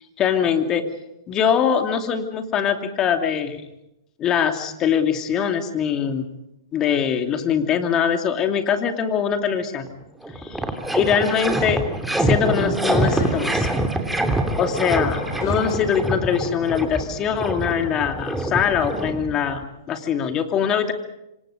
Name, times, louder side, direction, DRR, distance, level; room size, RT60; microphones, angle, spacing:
voice 1, 0.2-0.9 1.3-3.6 4.2-6.3 6.7-10.0 10.4-10.6 10.9-11.8 12.2-13.7 14.6-20.9, left 8 dB, 25° left, 6 dB, 2.6 m, -22 dB
sound 1, 9.7-9.9 12.9-13.7 15.1-16.0, left 4 dB, 75° left, 5.3 m, -39 dB
sound 2, 9.9-10.0 10.2-19.6, right 1 dB, 5° right, 2.8 m, -25 dB
27.5 x 25.5 x 5.2 m, 0.87 s
hypercardioid pair, 125°, 2 cm